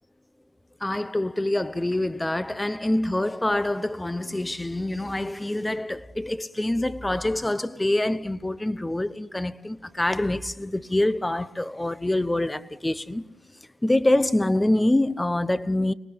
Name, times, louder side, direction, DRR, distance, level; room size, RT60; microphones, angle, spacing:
voice 1, 0.8-13.2 13.8-15.9, left 1 dB, 10° left, 0.9 m, -25 dB
29.5 x 19.0 x 8.7 m
cardioid pair, 90°, 0 cm